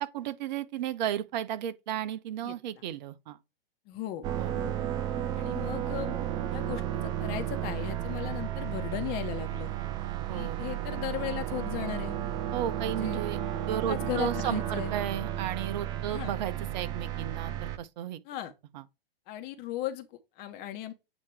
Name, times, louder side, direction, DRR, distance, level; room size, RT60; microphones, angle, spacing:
voice 1, 0.0-3.4 4.4-4.5 10.3-10.6 12.5-13.4 13.7-18.2 18.7-18.8, right 10 dB, 50° right, 0.8 m, -34 dB
voice 2, 2.4-2.8 3.8-4.2 4.5-4.7 5.3-6.2 6.5-9.7 10.3-12.2 12.8-13.2 13.9-14.9 16.1-16.3 18.2-18.5 19.3-20.9, left 12 dB, 35° left, 1.2 m, -37 dB
sound 1, 4.2-17.8, right 11 dB, 15° right, 0.3 m, -33 dB
8.5 x 3.0 x 4.6 m
hypercardioid pair, 120°, 30 cm